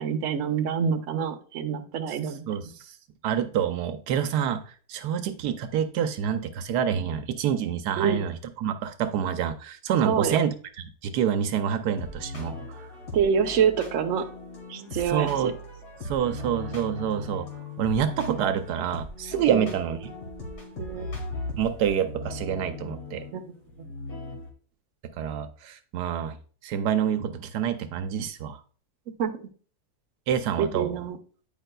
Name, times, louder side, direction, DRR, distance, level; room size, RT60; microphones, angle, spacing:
voice 1, 0.0-2.4 8.0-8.3 10.0-10.4 13.1-14.3 14.7-15.3 19.5-19.7 20.8-21.1 23.3-23.4 29.1-29.5 30.6-31.2, right 7 dB, 60° right, 5 dB, 1.0 m, -26 dB
voice 2, 2.5-2.9 3.2-4.6 4.9-12.9 15.1-15.5 16.0-17.5 17.8-20.1 21.6-23.2 25.2-26.4 26.6-28.6 30.3-30.9, right 8 dB, 85° right, 8 dB, 1.2 m, -27 dB
sound 1, 11.7-24.5, left 2 dB, 65° left, 1.8 m, -38 dB
8.9 x 5.4 x 2.2 m, 0.42 s
omnidirectional pair, 1.7 m